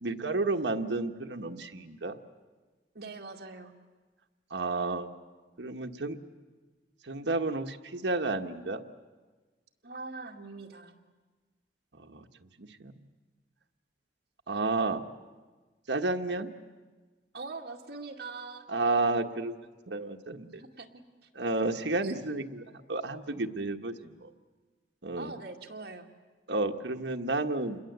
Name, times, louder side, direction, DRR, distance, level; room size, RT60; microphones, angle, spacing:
voice 1, 0.0-2.2 4.5-5.1 5.6-6.2 7.0-8.8 12.0-12.3 12.6-12.9 14.5-15.0 15.9-16.5 18.7-19.6 19.9-20.6 21.3-24.3 25.0-25.3 26.5-27.8, right 2 dB, 85° right, 5 dB, 1.3 m, -31 dB
voice 2, 2.9-3.7 9.8-11.0 17.3-18.7 20.6-21.3 22.0-22.3 25.2-26.1, right 3 dB, 65° right, 1 dB, 2.2 m, -43 dB
28.0 x 21.5 x 8.0 m, 1.3 s
head